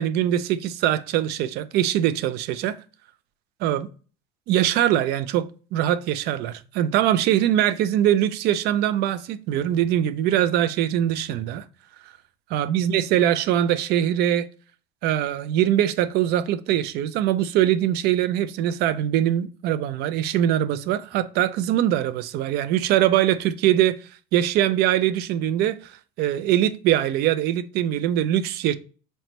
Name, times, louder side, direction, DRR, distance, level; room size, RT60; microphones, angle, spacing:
voice 1, 0.0-2.8 3.6-3.9 4.5-5.5 5.7-11.6 12.5-14.5 15.0-24.0 24.3-25.8 26.2-28.7, right 11 dB, 55° right, 0.4 m, -22 dB
4.1 x 3.2 x 2.8 m
cardioid pair, 150°, 21 cm